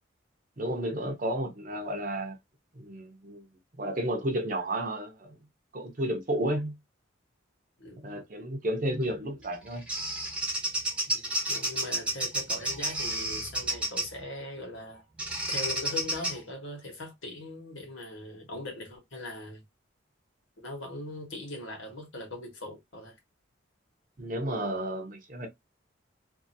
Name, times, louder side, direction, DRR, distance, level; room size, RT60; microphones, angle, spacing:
voice 1, 0.6-2.4 2.7-3.5 3.8-5.4 5.7-6.8 8.0-9.8 24.2-25.5, right 1 dB, 40° right, 0.7 m, -32 dB
Bird vocalization bird call bird song, 9.4-14.2 15.2-16.4, right 1 dB, 5° right, 0.9 m, -31 dB
voice 2, 11.1-15.0 15.5-19.6 20.6-23.1, left 1 dB, 85° left, 1.4 m, -40 dB
2.7 x 2.6 x 2.7 m
head